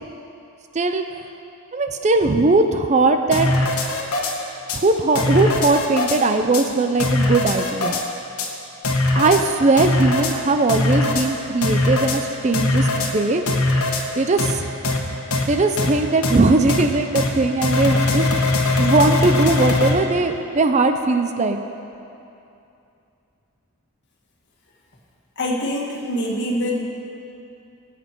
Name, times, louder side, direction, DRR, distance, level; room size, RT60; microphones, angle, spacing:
voice 1, 0.7-1.1 1.7-3.5 4.7-8.0 9.1-13.4 14.2-14.6 15.5-18.3 18.8-21.6, right 3 dB, 30° right, 7 dB, 0.5 m, -19 dB
sound 1, 3.3-4.3 4.7-4.8 5.1-6.2 6.5-6.6 7.0-8.0 8.4-8.5 8.8-9.4 9.8-10.3 10.7-11.3 11.6-12.2 12.5-13.1 13.5-14.0 14.4-14.5 14.8-15.0 15.3-15.4 15.8-15.9 16.2-16.4 16.7-16.8 17.1-17.3 17.6-19.9, left 2 dB, 80° left, 1.3 m, -20 dB
voice 2, 25.4-26.8, equal, 50° left, -2 dB, 1.9 m, -24 dB
19.0 x 7.5 x 4.5 m, 2.7 s
head